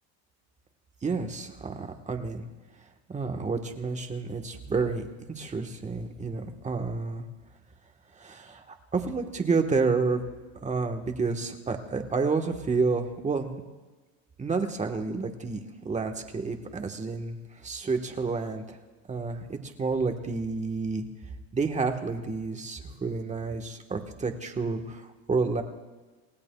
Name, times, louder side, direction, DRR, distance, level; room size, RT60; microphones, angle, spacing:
voice 1, 1.0-2.5 3.1-7.2 8.1-10.2 10.6-13.5 14.4-15.6 15.8-18.8 19.1-21.0 21.5-25.6, right 4 dB, 20° right, 4 dB, 1.4 m, -30 dB
29.0 x 16.5 x 2.4 m, 1.3 s
cardioid pair, 130°, 36 cm